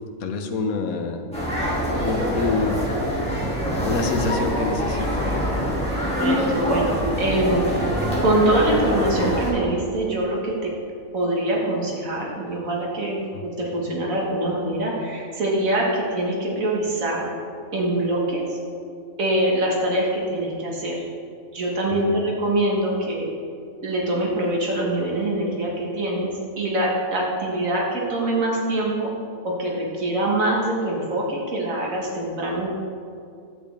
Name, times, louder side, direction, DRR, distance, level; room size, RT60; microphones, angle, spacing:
voice 1, 0.2-1.2 2.0-2.8 3.8-5.4 13.3-13.5 22.1-22.2, left 3 dB, 85° left, 5 dB, 1.3 m, -26 dB
sound 1, 1.3-9.5, equal, 5° left, 2.3 m, -24 dB
voice 2, 6.2-7.7 8.2-10.7 11.1-17.3 17.7-18.5 19.2-21.0 21.5-23.3 23.8-29.1 29.4-32.7, right 1 dB, 70° right, -3 dB, 1.9 m, -24 dB
10.5 x 8.4 x 3.5 m, 2.4 s
omnidirectional pair, 1.5 m